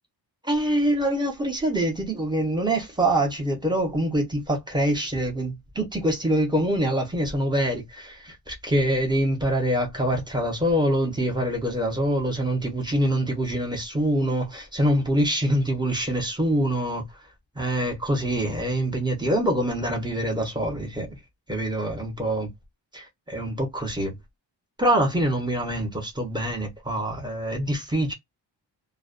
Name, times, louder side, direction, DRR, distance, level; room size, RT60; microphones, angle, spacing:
voice 1, 0.4-17.1 17.5-21.2 21.5-22.5 22.9-24.2 24.8-28.1, right 1 dB, 10° right, 0.8 m, -25 dB
2.5 x 2.1 x 2.4 m
wide cardioid pair, 135°, 44 cm